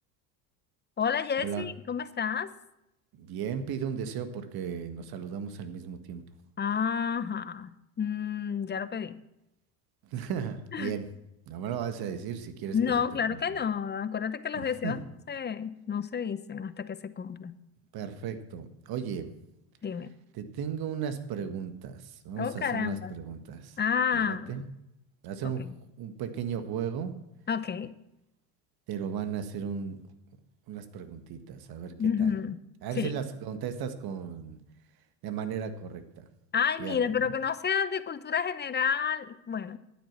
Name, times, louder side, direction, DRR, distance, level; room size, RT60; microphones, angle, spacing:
voice 1, 1.0-2.5 6.6-7.7 8.0-9.2 10.7-10.9 12.7-17.6 19.8-20.1 22.4-23.1 23.8-24.6 25.6-25.7 27.5-27.9 32.0-32.6 33.0-33.1 36.5-39.8, left 7 dB, 25° left, 14 dB, 0.8 m, -30 dB
voice 2, 3.1-6.2 10.1-11.1 11.5-13.0 13.3-13.6 14.8-15.0 17.9-19.3 20.3-23.8 24.1-24.6 25.2-25.7 26.0-27.1 28.9-30.0 30.7-31.9 32.2-32.3 32.8-34.6 35.2-36.2 36.8-37.2, right 7 dB, 55° right, 9 dB, 1.7 m, -35 dB
12.0 x 9.6 x 5.9 m, 0.88 s
hypercardioid pair, 80°, 44 cm